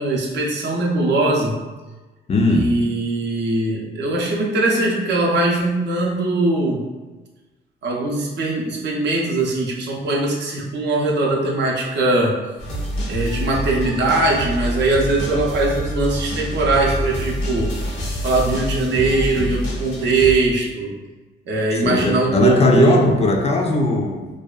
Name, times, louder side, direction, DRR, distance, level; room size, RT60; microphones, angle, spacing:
voice 1, 0.0-1.6 2.5-6.8 7.8-12.4 13.1-17.7 18.2-20.9 21.5-23.0, right 2 dB, 60° right, -1 dB, 0.6 m, -20 dB
voice 2, 2.3-2.8 21.8-24.3, left 2 dB, 30° left, 1 dB, 0.4 m, -18 dB
sound 1, 12.6-20.4, equal, 90° left, 0.8 m, -26 dB
2.6 x 2.3 x 2.3 m, 1.2 s
cardioid pair, 90°, 20 cm